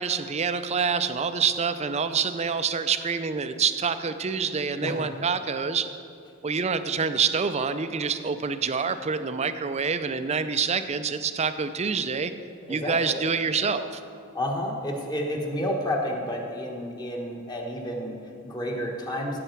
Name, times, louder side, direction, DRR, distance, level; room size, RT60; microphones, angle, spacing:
voice 1, 0.0-5.9 6.4-12.3 12.7-13.9, right 5 dB, 30° right, 11 dB, 0.5 m, -26 dB
voice 2, 12.7-13.2 14.3-19.4, equal, 20° left, 0 dB, 1.3 m, -30 dB
15.5 x 7.9 x 4.6 m, 2.5 s
head